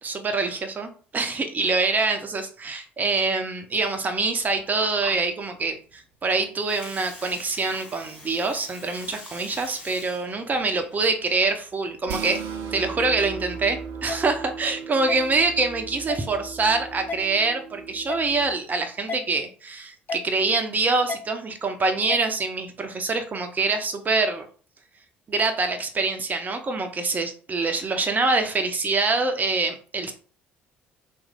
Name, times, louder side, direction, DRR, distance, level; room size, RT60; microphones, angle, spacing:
voice 1, 0.0-12.4 12.7-24.5 25.3-30.1, right 3 dB, 30° right, 6 dB, 0.8 m, -25 dB
Water, 4.4-12.3, left 1 dB, 90° left, 1.2 m, -44 dB
sound 1, 12.1-18.5, right 6 dB, 65° right, 0.4 m, -37 dB
sound 2, 14.1-14.2 15.1-15.2 16.1-16.2 17.1-17.2 18.1-18.3 19.1-19.2 20.1-20.3 21.1-21.2 22.1-22.3, left 4 dB, 35° left, 0.4 m, -31 dB
3.2 x 2.6 x 3.7 m, 0.41 s
figure-of-eight pair, 50°, 5 cm